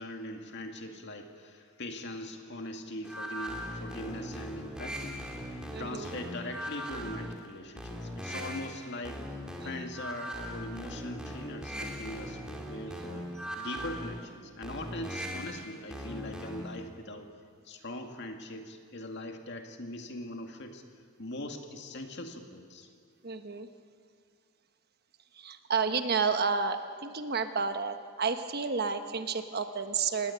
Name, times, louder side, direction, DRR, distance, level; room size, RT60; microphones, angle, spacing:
voice 1, 0.0-9.4 9.6-17.3 17.6-22.9, left 1 dB, 50° left, 4 dB, 2.3 m, -41 dB
sound 1, 3.0-16.8, equal, 5° right, 2.8 m, -40 dB
voice 2, 5.7-6.1 23.2-23.7 25.4-30.3, right 5 dB, 45° right, 8 dB, 1.2 m, -31 dB
27.0 x 19.0 x 8.7 m, 2.2 s
head